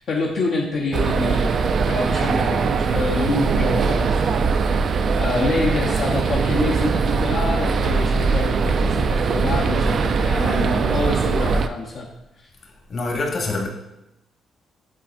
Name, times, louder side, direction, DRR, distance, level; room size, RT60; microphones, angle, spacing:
voice 1, 0.0-4.4 5.2-12.1 12.4-12.5, left 3 dB, 65° left, 0.8 m, -26 dB
sound 1, 0.9-11.7, right 5 dB, 55° right, 0.3 m, -21 dB
voice 2, 12.6-13.7, left 3 dB, 50° left, 1.5 m, -26 dB
8.8 x 4.2 x 2.5 m
cardioid pair, 90°, 0 cm